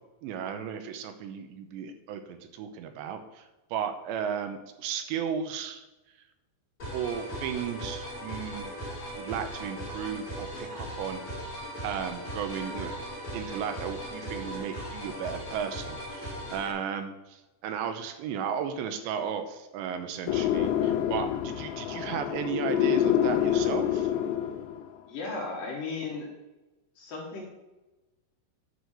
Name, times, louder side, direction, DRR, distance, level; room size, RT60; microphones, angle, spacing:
voice 1, 0.2-6.2 6.9-8.7 9.2-11.2 11.8-12.9 13.3-24.1, right 7 dB, 80° right, 8 dB, 3.0 m, -35 dB
sound 1, 6.8-16.7, equal, 25° left, 2.2 m, -38 dB
sound 2, 20.3-24.9, left 10 dB, 85° left, 2.9 m, -27 dB
voice 2, 25.1-26.3 27.0-27.5, left 3 dB, 60° left, -1 dB, 3.0 m, -36 dB
10.0 x 4.8 x 6.8 m, 1.0 s
omnidirectional pair, 5.1 m